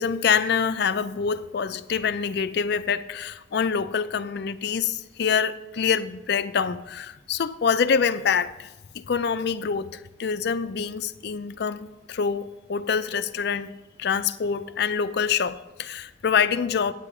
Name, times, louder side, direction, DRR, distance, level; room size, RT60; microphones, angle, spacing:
voice 1, 0.0-8.7 9.1-13.7 14.0-16.9, left 6 dB, 50° left, 0.4 m, -25 dB
9.0 x 8.5 x 4.8 m
head